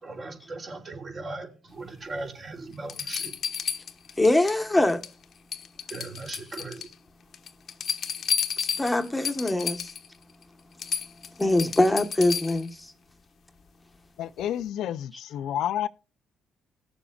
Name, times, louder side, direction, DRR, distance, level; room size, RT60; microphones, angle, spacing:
voice 1, 0.0-3.3 5.9-6.9, right 3 dB, 40° right, 3.1 m, -38 dB
sound 1, 2.2-2.3 2.9-4.6 4.9-5.2 5.5-6.9 7.3-10.1 10.4-10.5 10.8-12.7 14.4-14.5, left 7 dB, 60° left, 1.1 m, -32 dB
voice 2, 4.2-5.0 8.6-9.9 11.4-12.9, left 2 dB, 10° left, 1.3 m, -23 dB
voice 3, 14.2-15.9, left 11 dB, 80° left, 0.5 m, -30 dB
19.0 x 7.1 x 2.4 m
cardioid pair, 90°, 0 cm